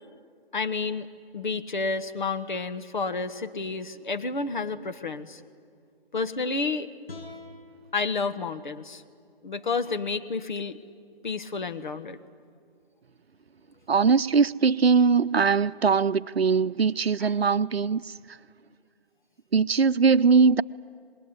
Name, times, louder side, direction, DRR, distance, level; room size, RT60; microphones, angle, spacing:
voice 1, 0.5-1.1 1.3-5.4 6.1-6.9 7.9-9.0 9.4-10.8 11.2-12.2 17.2-17.3, left 4 dB, 50° left, 1.3 m, -30 dB
sound 1, 7.1-10.2, left 2 dB, 70° left, 7.4 m, -48 dB
voice 2, 13.9-18.1 19.5-20.6, right 5 dB, 75° right, 0.7 m, -21 dB
26.0 x 21.0 x 9.7 m
figure-of-eight pair, 155°, 31 cm